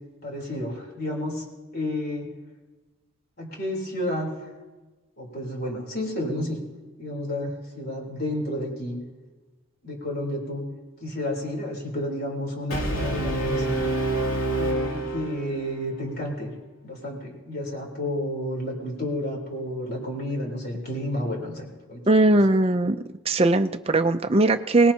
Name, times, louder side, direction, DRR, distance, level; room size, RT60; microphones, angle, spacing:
voice 1, 0.2-1.4 1.7-2.3 3.4-4.5 5.2-6.6 7.0-9.0 9.8-10.6 11.0-13.8 14.5-16.5 16.8-22.2, left 1 dB, 45° left, -1 dB, 3.8 m, -31 dB
Brass instrument, 12.7-15.8, right 2 dB, 80° left, 2.9 m, -27 dB
voice 2, 22.1-23.0 23.3-24.9, right 2 dB, 25° right, 7 dB, 0.5 m, -19 dB
24.5 x 19.0 x 2.9 m, 1.2 s
head